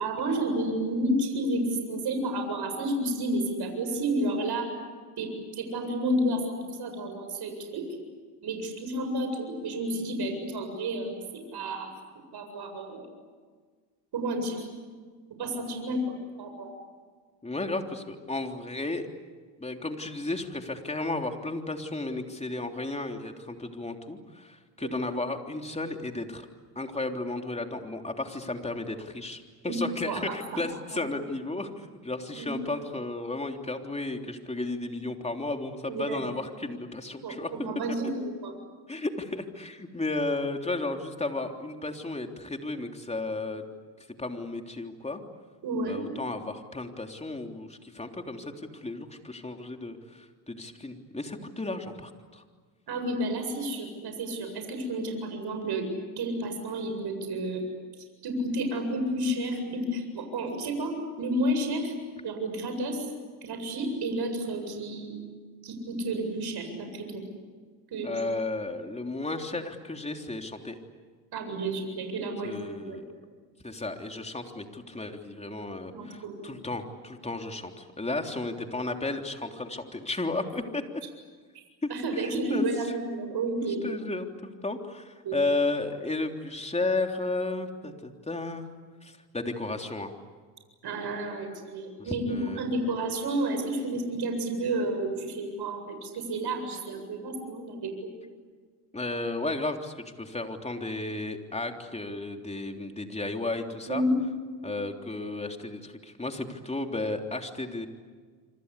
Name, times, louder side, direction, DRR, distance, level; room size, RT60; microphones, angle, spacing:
voice 1, 0.0-4.7 5.2-7.8 8.4-11.9 12.3-13.1 14.1-14.7 15.4-16.7 24.8-24.9 29.6-29.8 30.1-30.2 30.5-30.6 32.3-32.5 35.9-36.2 37.2-38.6 45.6-46.0 52.9-55.9 56.2-57.6 58.2-60.9 61.2-61.9 62.2-63.1 63.4-65.2 65.6-67.2 67.9-68.1 71.3-73.0 75.9-76.5 81.9-83.8 85.2-85.4 90.8-97.9 103.9-104.2, right 1 dB, 50° right, 5 dB, 7.8 m, -31 dB
voice 2, 17.4-19.1 19.6-26.5 26.7-37.5 38.9-43.6 44.2-45.2 45.8-52.4 68.0-70.8 72.4-73.0 73.6-80.8 81.8-82.7 83.8-88.7 89.0-90.1 92.1-92.7 98.9-104.0 104.6-107.9, left 2 dB, 15° left, 4 dB, 3.4 m, -33 dB
27.0 x 26.0 x 8.4 m, 1.5 s
supercardioid pair, 80°, 50 cm